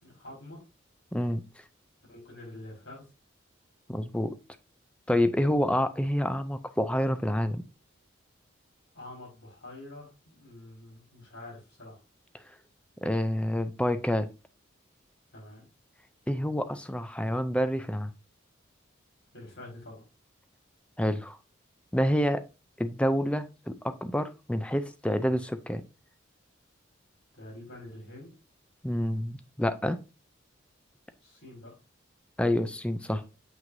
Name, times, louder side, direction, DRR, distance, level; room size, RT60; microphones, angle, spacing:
voice 1, 0.0-0.6 2.1-3.1 8.9-12.0 15.3-15.7 19.3-20.0 27.3-28.4 31.2-31.8, left 1 dB, 85° left, -3 dB, 4.4 m, -46 dB
voice 2, 1.1-1.4 3.9-4.3 5.1-7.6 13.0-14.3 16.3-18.1 21.0-21.4 21.9-22.4 22.8-25.8 28.8-30.0 32.4-33.2, equal, 5° left, 10 dB, 0.4 m, -28 dB
7.5 x 5.9 x 2.6 m, 0.29 s
head